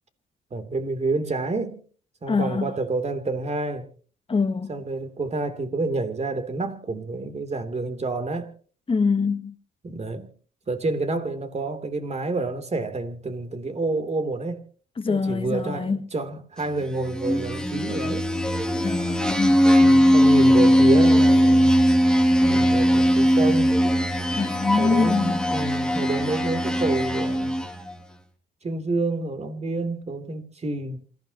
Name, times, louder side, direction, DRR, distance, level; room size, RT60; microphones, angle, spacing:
voice 1, 0.5-1.8 2.2-3.9 4.7-8.5 9.8-10.3 10.7-14.6 15.1-18.3 19.8-21.7 22.5-23.8 24.8-27.6 28.6-31.0, right 3 dB, 35° right, 3.3 m, -28 dB
voice 2, 2.3-2.7 4.3-4.7 8.9-9.5 15.0-16.0 18.8-19.6 24.3-25.5, left 4 dB, 25° left, 1.4 m, -24 dB
sound 1, 17.0-27.9, equal, 5° left, 2.6 m, -19 dB
27.5 x 15.5 x 3.0 m
cardioid pair, 90°, 20 cm